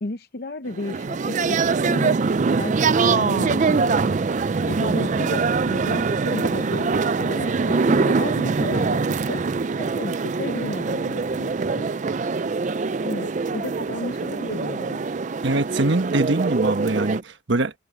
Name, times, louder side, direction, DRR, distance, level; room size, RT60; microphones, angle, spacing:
voice 1, 0.0-1.6 1.8-4.1 4.7-9.0 9.3-9.4 9.8-11.9 13.0-15.1, left 2 dB, 50° left, 0.7 m, -33 dB
sound 1, 0.7-17.2, right 4 dB, 35° right, 0.4 m, -23 dB
voice 2, 15.4-17.7, right 2 dB, 60° right, 1.2 m, -23 dB
head